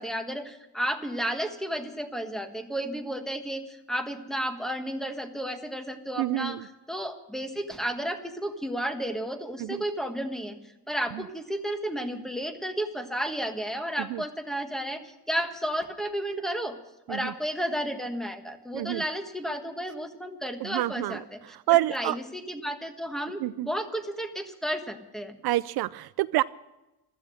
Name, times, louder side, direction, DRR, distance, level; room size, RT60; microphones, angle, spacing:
voice 1, 0.0-6.6 6.9-10.6 10.9-16.8 17.1-25.4, equal, ahead, 6 dB, 1.4 m, -32 dB
voice 2, 6.2-6.6 9.6-9.8 11.1-11.2 14.0-14.2 17.1-17.3 18.7-19.0 20.6-21.2 21.7-22.2 23.4-23.7 25.4-26.4, right 17 dB, 70° right, 16 dB, 0.5 m, -27 dB
15.5 x 13.5 x 6.3 m, 0.97 s
cardioid pair, 150°, 40 cm